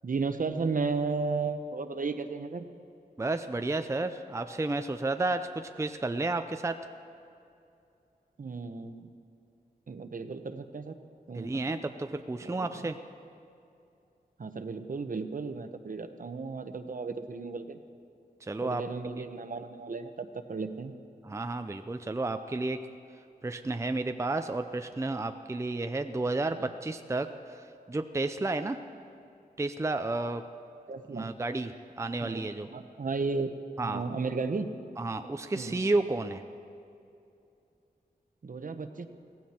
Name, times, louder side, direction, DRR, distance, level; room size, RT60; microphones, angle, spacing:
voice 1, 0.0-2.7 8.4-9.1 9.9-10.9 11.3-11.5 12.4-12.9 14.4-17.8 18.6-20.9 26.6-26.7 30.9-31.3 32.2-32.4 32.7-33.6 33.8-34.7 35.5-35.8 38.4-39.1, right 4 dB, 55° right, 8 dB, 0.9 m, -34 dB
voice 2, 3.2-6.8 11.3-13.0 18.4-18.8 19.2-19.3 21.2-22.8 23.4-28.8 29.6-30.4 31.1-32.7 33.8-34.1 35.0-36.4, right 2 dB, 20° right, 8 dB, 0.5 m, -32 dB
17.0 x 15.5 x 4.4 m, 2.6 s
wide cardioid pair, 80°, 16 cm